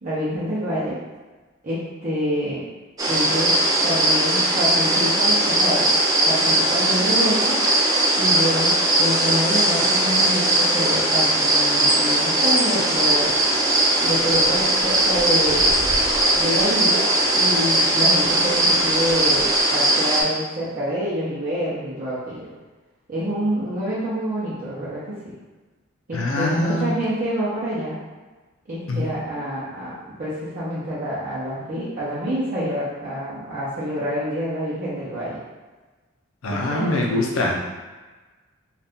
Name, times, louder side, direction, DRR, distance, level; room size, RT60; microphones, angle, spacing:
voice 1, 0.0-1.0 1.6-2.6 3.1-5.9 6.2-7.6 8.2-13.3 14.0-15.8 16.3-22.5 23.1-25.2 26.1-28.0 28.7-29.9 30.2-35.4 36.5-37.0, equal, 40° right, -11 dB, 0.8 m, -27 dB
sound 1, 3.0-20.2, right 1 dB, 15° right, 0.4 m, -19 dB
Bird, 13.0-19.6, equal, 75° right, 0.7 m, -39 dB
voice 2, 26.1-27.0 28.9-29.1 36.4-37.6, left 1 dB, 70° left, -1 dB, 0.6 m, -23 dB
2.7 x 2.5 x 3.5 m, 1.3 s
head